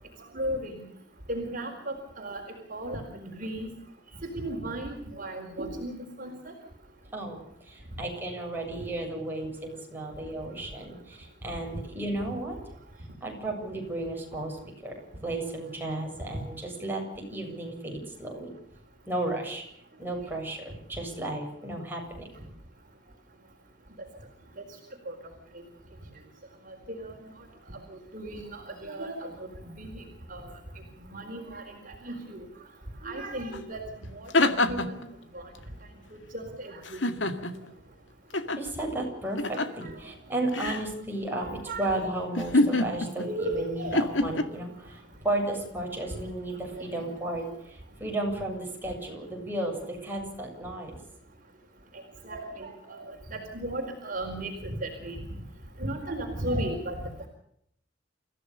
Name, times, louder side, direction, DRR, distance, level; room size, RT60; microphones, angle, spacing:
voice 1, 0.3-0.8 1.3-2.4 2.7-3.7 4.3-6.4 25.1-25.2 26.9-27.1 27.9-29.3 29.8-30.0 30.3-30.4 31.1-31.7 32.0-32.4 33.0-33.8 34.1-35.0 35.3-35.4 36.3-37.0 41.4-42.0 43.2-44.0 46.9-47.0 52.2-53.0 53.3-55.2 55.8-57.0, right 1 dB, 45° right, 1 dB, 4.5 m, -35 dB
voice 2, 7.1-12.6 13.2-15.0 15.2-18.5 19.1-19.6 20.0-22.3 38.5-47.4 48.0-51.0, right 1 dB, 10° right, -1 dB, 7.8 m, -34 dB
sound 1, 33.5-33.6 34.0-35.0 36.8-37.7 38.3-38.6 39.4-39.8 40.5-40.9 42.3-43.3 43.9-44.4, left 2 dB, 80° left, 2.1 m, -26 dB
29.0 x 15.5 x 6.8 m, 0.70 s
head